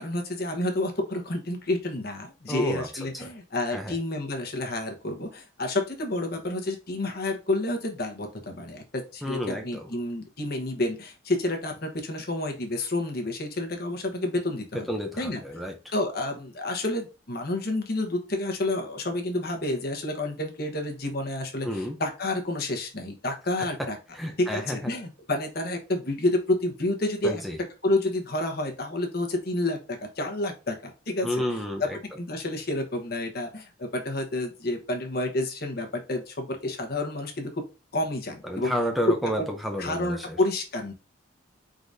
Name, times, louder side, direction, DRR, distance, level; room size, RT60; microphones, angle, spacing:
voice 1, 0.0-14.9 15.2-15.4 15.9-24.0 24.4-27.4 27.8-31.6 32.2-37.6 37.9-38.7 39.8-40.9, left 2 dB, 50° left, 3 dB, 1.1 m, -29 dB
voice 2, 2.5-2.9 3.1-3.3 3.7-3.9 9.2-9.9 14.9-15.8 21.6-22.0 23.6-23.7 24.1-24.9 27.2-27.6 31.2-32.0 38.4-40.4, equal, ahead, 2 dB, 0.6 m, -31 dB
4.8 x 3.9 x 2.6 m, 0.30 s
head